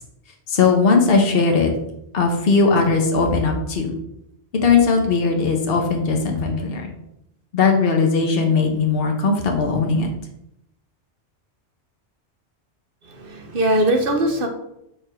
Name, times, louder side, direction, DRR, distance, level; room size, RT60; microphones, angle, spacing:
voice 1, 0.5-1.7 2.1-3.9 4.6-6.9 7.5-10.1, left 4 dB, 55° left, 2 dB, 1.2 m, -18 dB
voice 2, 13.0-14.5, right 1 dB, 50° right, 4 dB, 1.1 m, -21 dB
5.2 x 4.7 x 5.0 m, 0.80 s
omnidirectional pair, 1.2 m